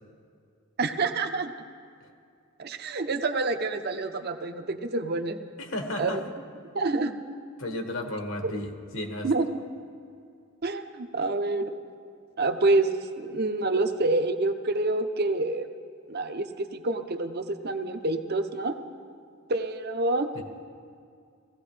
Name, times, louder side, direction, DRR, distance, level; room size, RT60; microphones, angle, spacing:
voice 1, 0.8-1.5 2.6-5.4 6.0-6.2 6.7-7.1 8.4-8.5 9.2-9.6 10.6-11.7 12.4-12.9 13.2-15.7 16.1-18.8 19.5-20.4, right 2 dB, 50° right, 8 dB, 0.7 m, -27 dB
voice 2, 5.6-6.2 7.6-9.3 20.3-20.4, left 1 dB, 70° left, 3 dB, 1.4 m, -33 dB
19.0 x 15.5 x 3.3 m, 2.3 s
head